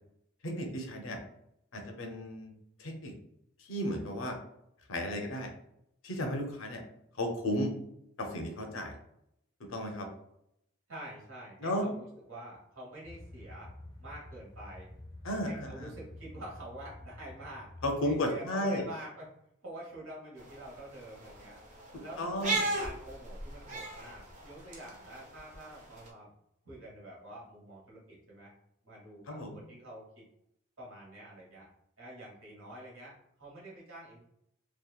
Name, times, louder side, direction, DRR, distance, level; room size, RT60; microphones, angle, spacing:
voice 1, 0.4-1.2 1.7-2.5 2.8-3.1 3.6-4.4 4.9-5.5 6.0-6.8 7.1-7.7 8.2-9.0 9.7-10.1 11.6-11.9 15.2-15.9 17.8-18.8 22.2-22.6 29.3-29.6, left 1 dB, 75° left, 3 dB, 0.6 m, -34 dB
voice 2, 10.9-13.7 14.0-14.9 15.4-17.7 18.0-19.3 19.6-21.6 22.0-26.3 26.6-28.5 28.8-30.2 30.8-31.7 32.0-34.2, right 1 dB, 85° right, -4 dB, 1.2 m, -47 dB
sound 1, 13.0-18.4, left 1 dB, 20° left, 0.4 m, -49 dB
sound 2, 20.4-26.1, right 2 dB, 35° right, 0.5 m, -38 dB
2.8 x 2.3 x 2.3 m, 0.77 s
head